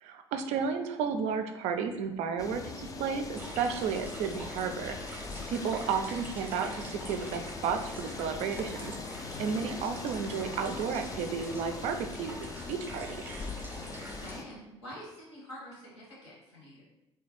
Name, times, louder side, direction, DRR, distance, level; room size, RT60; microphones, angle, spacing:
voice 1, 0.0-9.1 9.4-13.2, right 6 dB, 55° right, 6 dB, 0.4 m, -33 dB
sound 1, 2.4-14.5, left 4 dB, 25° left, 0.3 m, -41 dB
sound 2, 3.3-14.3, right 1 dB, 15° right, 0.6 m, -46 dB
voice 2, 14.1-16.8, equal, 80° left, -4 dB, 1.0 m, -47 dB
3.2 x 2.2 x 3.1 m, 0.93 s
figure-of-eight pair, 55°, 14 cm